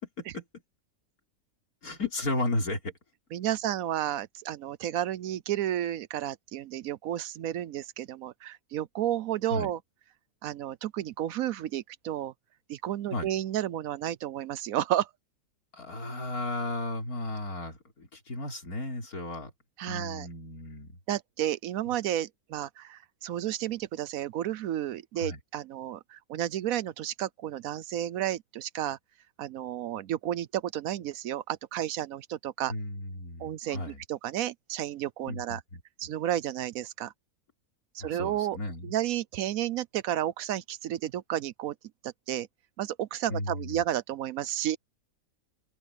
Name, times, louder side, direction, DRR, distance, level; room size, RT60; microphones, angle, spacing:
voice 1, 1.8-2.9 9.5-9.7 13.1-13.3 15.7-19.5 19.9-21.0 25.2-25.4 32.7-34.0 35.3-35.8 38.0-38.9 43.3-43.8, left 2 dB, 75° left, 4.4 m, -34 dB
voice 2, 3.3-9.8 10.4-12.3 12.7-15.1 19.8-20.3 21.1-29.0 29.4-32.7 33.4-35.6 36.0-37.1 37.9-38.6 38.8-41.7 42.0-42.5 42.8-44.8, right 12 dB, 70° right, 1.0 m, -32 dB
omnidirectional pair, 1.6 m